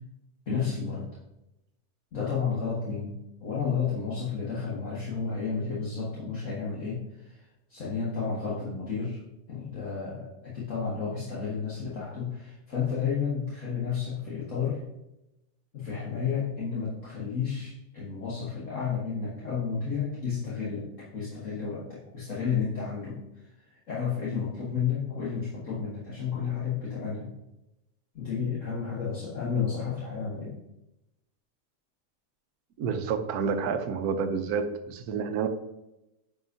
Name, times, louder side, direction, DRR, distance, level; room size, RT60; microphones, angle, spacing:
voice 1, 0.5-1.1 2.1-7.4 7.7-9.2 9.5-14.8 15.7-27.3 28.1-30.5, left 6 dB, 55° left, -7 dB, 1.8 m, -32 dB
voice 2, 32.8-35.5, right 6 dB, 75° right, 8 dB, 1.2 m, -29 dB
9.8 x 5.2 x 2.7 m, 0.91 s
omnidirectional pair, 1.7 m